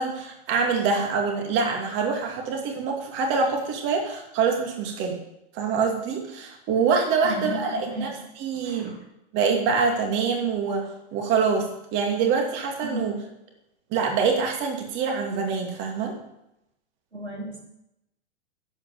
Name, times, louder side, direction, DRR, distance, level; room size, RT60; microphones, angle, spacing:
voice 1, 0.0-5.2 5.5-8.9 9.3-13.2 13.9-16.2, right 5 dB, 35° right, 2 dB, 2.6 m, -25 dB
voice 2, 7.2-8.1 8.6-9.0 12.8-13.1 17.1-17.6, right 1 dB, 85° right, 0 dB, 3.4 m, -33 dB
11.0 x 8.9 x 7.7 m, 0.86 s
figure-of-eight pair, 100°, 32 cm